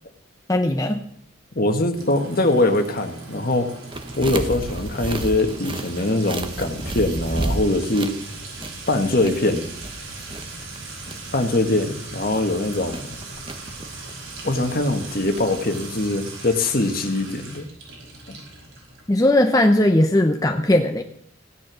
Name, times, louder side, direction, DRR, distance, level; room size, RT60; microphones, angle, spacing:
voice 1, 0.5-1.0 19.1-21.0, left 1 dB, 15° left, 4 dB, 0.7 m, -18 dB
voice 2, 1.5-3.7 4.2-8.1 8.9-9.7 11.3-13.1 14.4-17.6 18.3-18.4, left 2 dB, 45° left, 6 dB, 1.6 m, -22 dB
Sink (filling or washing) / Trickle dribble / Fill (with liquid), 1.9-19.4, right 3 dB, 75° right, 5.3 m, -39 dB
sound 1, 3.9-16.1, right 1 dB, 25° right, 1.0 m, -33 dB
15.5 x 10.0 x 6.2 m, 0.65 s
head